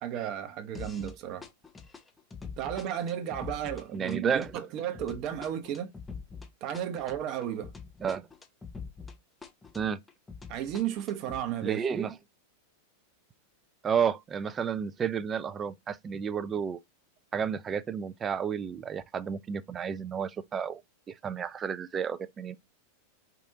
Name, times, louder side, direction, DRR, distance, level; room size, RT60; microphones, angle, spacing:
voice 1, 0.0-1.5 2.6-5.9 6.6-7.7 10.5-11.8, right 10 dB, 40° right, 0.8 m, -33 dB
sound 1, 0.7-1.2 1.4-9.2 9.4-11.4, left 5 dB, 10° left, 0.8 m, -44 dB
voice 2, 3.9-4.5 8.0-8.3 9.7-10.0 11.6-12.1 13.8-16.8 17.3-20.8 21.1-22.6, right 7 dB, 20° right, 0.4 m, -31 dB
4.8 x 2.6 x 2.7 m
figure-of-eight pair, 90°, 0 cm